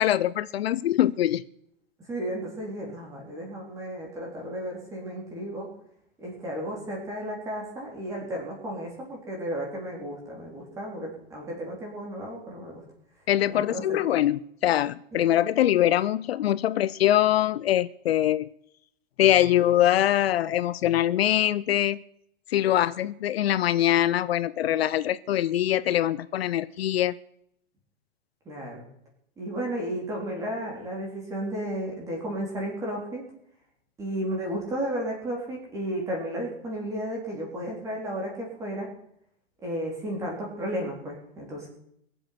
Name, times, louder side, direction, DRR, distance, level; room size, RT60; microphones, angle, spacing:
voice 1, 0.0-1.4 13.3-18.5 19.2-22.0 22.5-27.1, left 12 dB, 70° left, 17 dB, 0.7 m, -23 dB
voice 2, 2.1-5.7 6.2-12.8 13.5-14.0 15.1-15.2 28.5-28.9 29.4-33.2 34.0-38.9 39.6-41.7, right 1 dB, 10° right, -2 dB, 3.8 m, -33 dB
22.5 x 7.9 x 6.0 m, 0.72 s
supercardioid pair, 180°, 31 cm